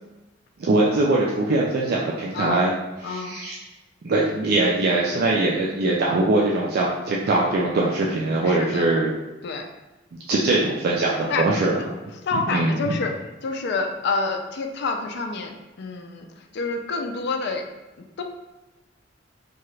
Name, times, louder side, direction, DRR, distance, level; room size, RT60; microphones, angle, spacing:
voice 1, 0.6-2.7 3.1-3.5 4.0-9.1 10.3-11.8 12.5-13.0, right 2 dB, 55° right, -4 dB, 0.4 m, -22 dB
voice 2, 2.3-2.7 3.0-3.4 8.4-8.9 9.4-9.7 11.3-11.5 12.2-13.1 13.4-17.6 18.0-18.2, left 4 dB, 60° left, 4 dB, 0.4 m, -28 dB
2.8 x 2.3 x 3.1 m, 1.1 s
head